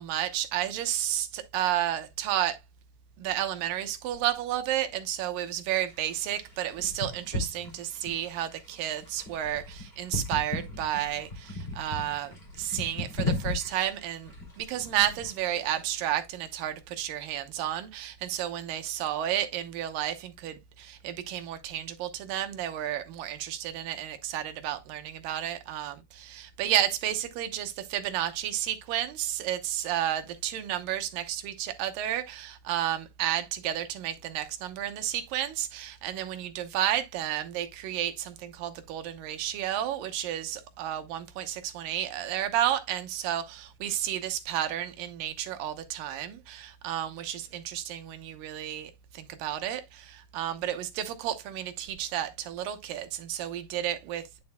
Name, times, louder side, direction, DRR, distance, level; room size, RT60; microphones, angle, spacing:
voice 1, 0.0-2.6 3.2-54.2, right 11 dB, 75° right, 2.4 m, -32 dB
sound 1, 5.8-15.9, left 2 dB, 20° left, 2.2 m, -37 dB
9.6 x 6.1 x 2.2 m
omnidirectional pair, 4.3 m